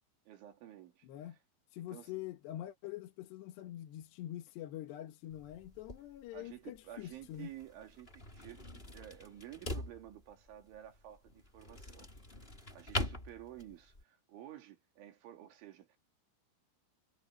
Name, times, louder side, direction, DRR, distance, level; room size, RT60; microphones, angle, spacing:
voice 1, 0.3-1.4 1.8-2.1 6.3-12.1 12.4-16.0, right 12 dB, 90° right, 5.2 m, -52 dB
voice 2, 1.0-1.4 1.7-7.5, left 13 dB, 70° left, 3.4 m, -45 dB
sound 1, 5.3-14.0, left 2 dB, 15° left, 4.1 m, -44 dB
omnidirectional pair, 5.3 m